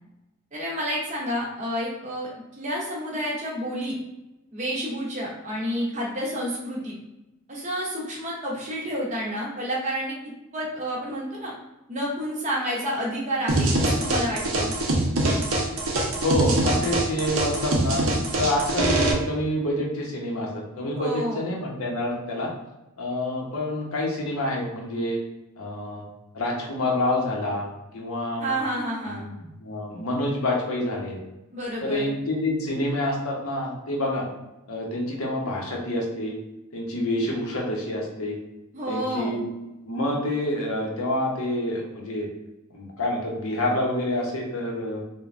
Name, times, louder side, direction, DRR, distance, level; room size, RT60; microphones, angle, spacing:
voice 1, 0.5-2.3 2.6-4.0 4.5-6.9 7.5-10.1 10.5-11.5 11.9-14.7 21.0-21.5 28.4-29.3 31.5-32.1 38.7-39.4, equal, 30° right, -3 dB, 0.7 m, -29 dB
sound 1, 13.5-19.1, right 2 dB, 70° right, 0.6 m, -23 dB
voice 2, 16.2-18.0 18.4-22.5 23.0-25.2 25.6-26.1 26.3-27.7 27.9-28.6 29.1-29.3 29.6-31.2 31.8-34.3 34.7-36.4 36.7-38.4 38.9-39.4 39.8-42.3 42.7-45.0, left 1 dB, 75° left, -1 dB, 0.7 m, -27 dB
3.2 x 2.1 x 2.4 m, 0.97 s
head